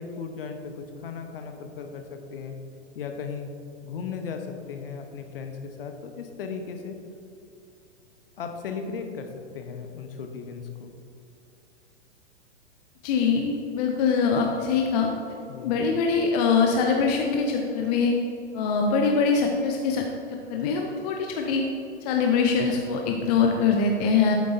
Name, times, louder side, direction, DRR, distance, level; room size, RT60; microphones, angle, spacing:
voice 1, 0.0-2.5 2.9-3.5 3.8-7.0 8.4-9.3 9.5-10.9 15.5-15.7, left 5 dB, 50° left, 5 dB, 1.0 m, -36 dB
voice 2, 13.0-15.1 15.6-18.1 18.5-20.0 20.5-21.6 22.0-24.4, left 5 dB, 35° left, 2 dB, 0.7 m, -23 dB
11.5 x 8.4 x 2.7 m, 2.7 s
figure-of-eight pair, 105°, 35 cm